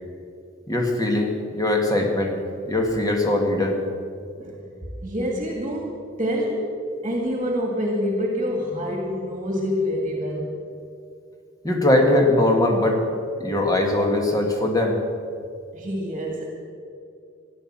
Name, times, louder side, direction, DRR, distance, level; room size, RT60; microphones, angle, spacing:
voice 1, 0.7-3.8 11.6-13.0 13.4-15.0, left 1 dB, 20° left, 2 dB, 1.9 m, -21 dB
voice 2, 5.0-10.6 15.7-16.4, equal, 30° right, 1 dB, 1.9 m, -26 dB
14.0 x 11.0 x 7.4 m, 2.4 s
head